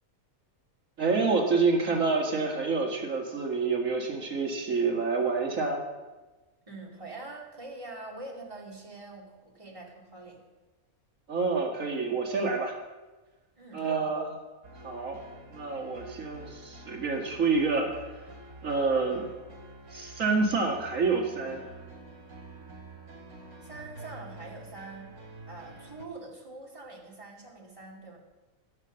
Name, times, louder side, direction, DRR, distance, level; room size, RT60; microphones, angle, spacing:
voice 1, 1.0-5.8 11.3-12.7 13.7-14.3 14.8-15.2 15.5-17.9 18.6-19.3 19.9-21.6, right 4 dB, 65° right, 0 dB, 2.5 m, -28 dB
voice 2, 6.7-10.4 13.6-14.1 23.6-25.1 25.5-28.2, right 2 dB, 20° right, -2 dB, 2.6 m, -44 dB
sound 1, 14.6-26.1, right 2 dB, 85° right, 2.6 m, -48 dB
16.5 x 7.3 x 6.5 m, 1.2 s
omnidirectional pair, 1.5 m